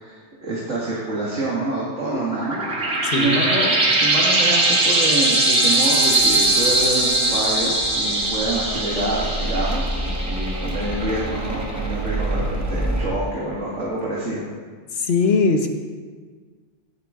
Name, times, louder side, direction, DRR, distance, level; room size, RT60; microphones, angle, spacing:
voice 1, 0.0-2.6 2.9-14.5, right 2 dB, 90° right, -6 dB, 2.3 m, -27 dB
sound 1, 2.0-11.2, right 2 dB, 60° right, 2.6 m, -21 dB
voice 2, 3.0-3.4 14.9-15.7, left 4 dB, 60° left, 5 dB, 1.2 m, -20 dB
sound 2, 6.0-13.1, right 1 dB, 15° right, 1.3 m, -28 dB
17.0 x 8.2 x 3.7 m, 1.5 s
omnidirectional pair, 1.2 m